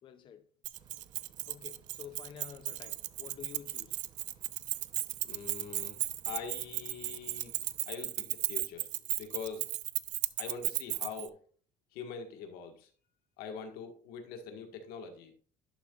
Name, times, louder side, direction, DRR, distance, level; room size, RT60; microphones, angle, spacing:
voice 1, 0.0-0.5 1.2-4.0, left 8 dB, 35° left, 0.5 m, -50 dB
Keys jangling, 0.6-11.3, right 17 dB, 55° right, 0.4 m, -35 dB
sound 1, 0.7-7.9, right 7 dB, 30° right, 0.8 m, -61 dB
voice 2, 5.2-6.0 6.2-8.9 9.2-9.7 10.4-11.4 11.9-12.9 13.4-15.3, left 6 dB, 90° left, 1.7 m, -43 dB
11.5 x 6.8 x 2.4 m
cardioid pair, 170°, 15 cm